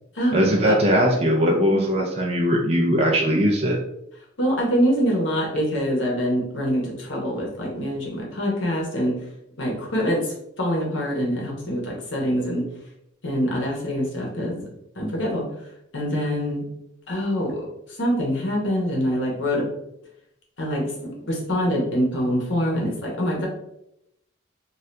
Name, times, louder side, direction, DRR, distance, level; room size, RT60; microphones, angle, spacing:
voice 1, 0.3-3.8, equal, 30° right, -1 dB, 0.4 m, -20 dB
voice 2, 4.4-9.1 9.6-10.2 10.6-12.6 13.2-14.6 15.0-15.5 15.9-16.7 17.1-17.6 18.0-19.6 20.6-23.5, equal, 70° left, -2 dB, 1.0 m, -24 dB
2.7 x 2.3 x 3.2 m, 0.80 s
head